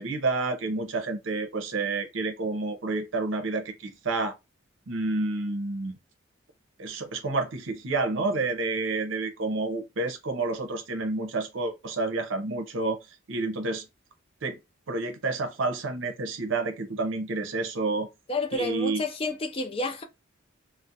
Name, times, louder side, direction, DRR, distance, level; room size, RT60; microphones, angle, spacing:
voice 1, 0.0-4.3 4.9-6.0 6.8-13.0 13.3-13.8 14.4-14.6 14.9-18.1 18.5-19.0, right 3 dB, 70° right, 0.6 m, -29 dB
voice 2, 18.3-20.0, left 2 dB, 25° left, 0.4 m, -30 dB
2.4 x 2.0 x 2.6 m
head